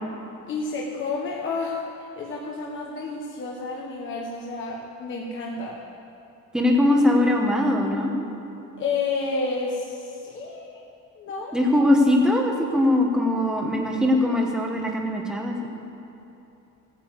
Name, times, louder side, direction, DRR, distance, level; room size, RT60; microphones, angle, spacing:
voice 1, 0.5-1.8 2.1-5.7 8.8-10.8 11.1-11.6, left 3 dB, 40° left, -2 dB, 1.5 m, -30 dB
voice 2, 6.5-8.1 11.5-15.7, left 1 dB, ahead, 0 dB, 1.4 m, -21 dB
16.5 x 9.9 x 8.1 m, 2.9 s
cardioid pair, 180°, 31 cm